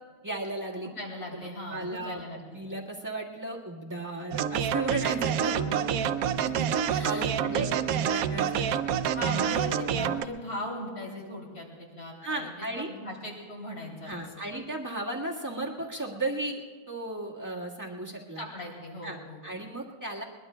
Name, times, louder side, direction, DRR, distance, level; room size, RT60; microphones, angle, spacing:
voice 1, 0.2-0.9 1.4-5.6 7.0-8.8 9.2-10.1 12.2-12.9 14.0-18.4 19.0-20.2, right 2 dB, 10° right, -4 dB, 1.5 m, -35 dB
voice 2, 0.8-2.6 5.5-7.7 9.1-14.4 18.4-19.4, equal, 70° left, -2 dB, 3.6 m, -39 dB
sound 1, 4.3-10.3, right 8 dB, 70° right, 0.9 m, -27 dB
21.5 x 21.5 x 2.2 m, 1.5 s
omnidirectional pair, 1.7 m